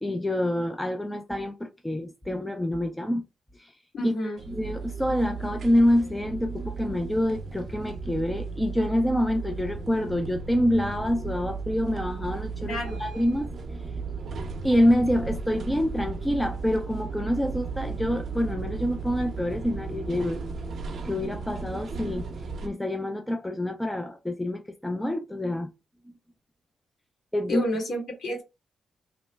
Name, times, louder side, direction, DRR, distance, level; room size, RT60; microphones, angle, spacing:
voice 1, 0.0-3.2 3.6-3.7 4.0-4.1 4.5-13.9 14.6-20.4 21.0-22.3 22.6-25.7 27.3-27.6, left 1 dB, 5° left, 0.3 m, -26 dB
voice 2, 3.9-4.4 12.6-13.0 27.5-28.4, left 1 dB, 55° left, 1.7 m, -30 dB
sound 1, 4.4-22.7, right 4 dB, 50° right, 0.5 m, -35 dB
2.9 x 2.0 x 3.3 m
wide cardioid pair, 145°, 0 cm